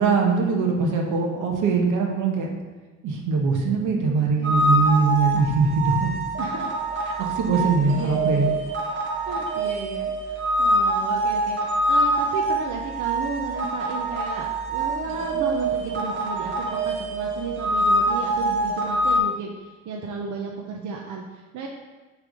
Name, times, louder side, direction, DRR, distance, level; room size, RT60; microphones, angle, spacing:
voice 1, 0.0-2.5 3.0-6.1 7.2-8.5, right 4 dB, 90° right, 1 dB, 1.0 m, -22 dB
voice 2, 3.7-4.9 6.4-6.7 7.2-7.3 7.5-8.5 9.3-21.7, right 5 dB, 75° right, -1 dB, 0.8 m, -34 dB
sound 1, 4.4-19.2, right 1 dB, 40° right, 1.4 m, -25 dB
6.5 x 3.4 x 5.2 m, 1.2 s
cardioid pair, 90°, 30 cm